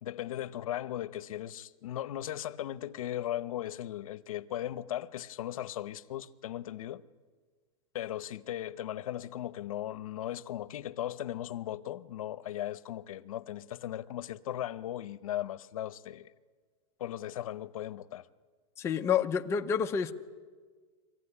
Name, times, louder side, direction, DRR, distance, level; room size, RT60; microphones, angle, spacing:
voice 1, 0.0-7.0 7.9-16.3 17.0-18.3, left 12 dB, 80° left, 0.8 m, -37 dB
voice 2, 18.8-20.1, left 7 dB, 15° left, 0.6 m, -28 dB
23.5 x 15.5 x 9.8 m
supercardioid pair, 160°, 18 cm